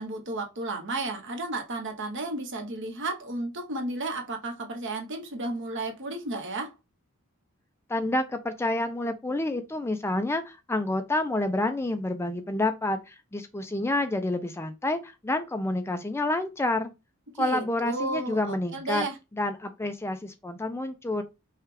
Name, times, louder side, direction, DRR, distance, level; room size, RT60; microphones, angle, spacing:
voice 1, 0.0-6.7 17.3-19.2, right 2 dB, 60° right, 1.1 m, -33 dB
voice 2, 7.9-16.9 17.4-19.0 19.3-21.2, left 2 dB, 10° left, 0.4 m, -28 dB
5.6 x 2.3 x 3.3 m
head